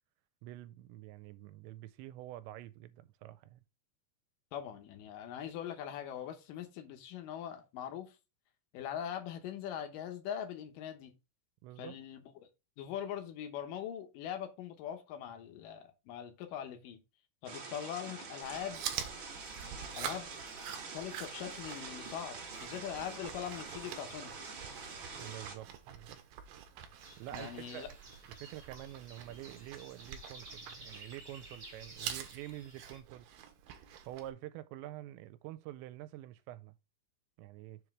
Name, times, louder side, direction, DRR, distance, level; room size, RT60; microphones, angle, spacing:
voice 1, 0.4-3.6 11.6-12.0 25.2-26.2 27.2-27.9 28.4-33.3 34.1-36.7 37.4-37.8, right 14 dB, 90° right, 2.9 m, -47 dB
voice 2, 4.5-8.1 8.7-11.2 11.8-12.3 12.8-17.0 17.4-18.8 20.0-20.3 20.9-24.4 27.3-27.9, left 9 dB, 75° left, 2.0 m, -42 dB
sound 1, 17.4-25.5, right 4 dB, 55° right, 1.4 m, -46 dB
Chewing mastication, 18.4-34.3, right 9 dB, 75° right, 2.4 m, -46 dB
sound 2, 27.0-33.0, right 2 dB, 25° right, 1.1 m, -53 dB
7.4 x 3.3 x 6.0 m
omnidirectional pair, 5.1 m